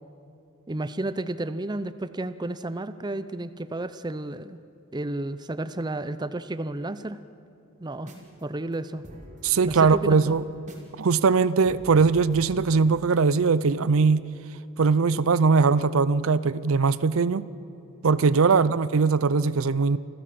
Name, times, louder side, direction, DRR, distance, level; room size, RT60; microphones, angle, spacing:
voice 1, 0.7-4.6 4.9-7.2 7.8-8.1 8.4-9.0 9.6-10.4 18.5-18.6, right 2 dB, 20° right, 13 dB, 0.6 m, -32 dB
sound 1, 8.0-8.4 8.7-8.8 9.0-11.0 11.3-11.4 11.6-13.1, equal, 35° right, 3.2 m, -46 dB
voice 2, 9.4-10.4 11.0-14.3 14.8-17.4 18.0-20.0, right 4 dB, 70° right, 17 dB, 0.5 m, -21 dB
26.5 x 15.5 x 7.7 m, 2.7 s
head